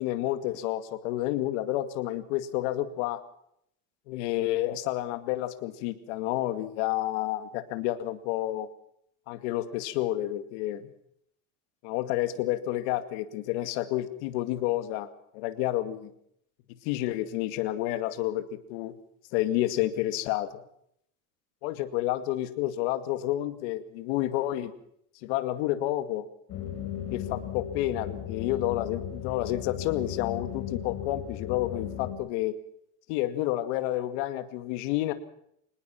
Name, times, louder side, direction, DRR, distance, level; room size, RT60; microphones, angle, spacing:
voice 1, 0.0-3.2 4.1-8.7 9.3-10.9 11.8-15.1 15.3-16.1 16.8-18.9 19.3-20.6 21.6-24.7 25.2-26.2 27.1-32.5 33.1-35.1, left 14 dB, 70° left, 11 dB, 2.2 m, -30 dB
sound 1, 26.5-32.1, left 9 dB, 40° left, 4.9 m, -36 dB
25.0 x 19.5 x 5.9 m, 0.70 s
cardioid pair, 160°, 37 cm